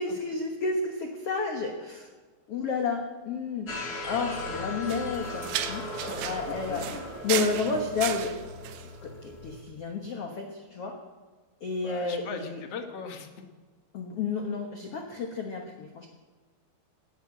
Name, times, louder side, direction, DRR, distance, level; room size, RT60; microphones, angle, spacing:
voice 1, 0.0-2.1 2.5-3.7 4.0-5.8 6.2-6.9 7.2-8.4 8.8-11.0 11.6-12.6 13.9-16.1, left 4 dB, 90° left, 3 dB, 1.3 m, -31 dB
sound 1, 3.7-9.6, left 2 dB, 40° left, 1.3 m, -38 dB
sound 2, 4.9-8.9, right 11 dB, 80° right, 2.9 m, -35 dB
voice 2, 6.1-7.0 11.8-13.3, left 6 dB, 65° left, 5 dB, 1.5 m, -40 dB
18.0 x 10.0 x 7.6 m, 1.4 s
omnidirectional pair, 4.9 m